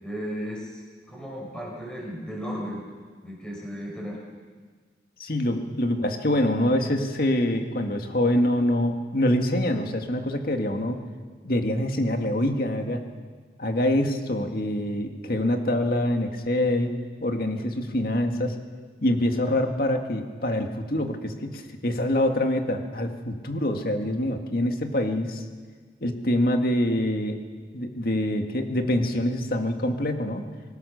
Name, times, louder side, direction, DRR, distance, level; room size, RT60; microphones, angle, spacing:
voice 1, 0.0-0.8 1.1-2.8 3.2-4.2, equal, 5° left, -3 dB, 5.9 m, -34 dB
voice 2, 5.2-11.0 11.4-13.0 13.6-16.9 17.2-18.5 19.0-25.4 26.0-27.4 27.7-30.5, left 1 dB, 55° left, 4 dB, 2.0 m, -25 dB
25.0 x 19.5 x 6.6 m, 1.5 s
head